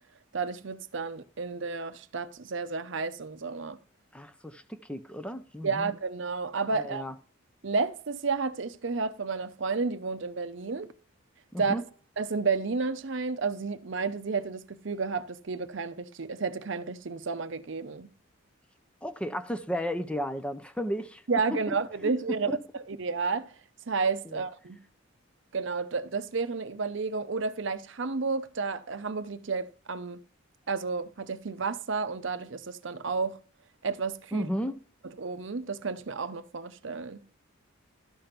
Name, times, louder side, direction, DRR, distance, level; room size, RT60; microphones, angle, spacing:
voice 1, 0.3-3.8 5.6-7.0 7.6-10.9 11.6-11.7 12.2-18.1 21.3-22.6 22.9-23.5 23.9-24.8 25.5-30.2 30.7-33.4 33.8-34.5 35.2-37.2, right 4 dB, 60° right, 0.7 m, -31 dB
voice 2, 4.1-5.9 6.8-7.1 11.5-11.8 19.0-21.2 21.5-21.8 24.3-24.4 34.3-34.8, equal, 5° left, 0.5 m, -34 dB
12.5 x 5.2 x 5.8 m
head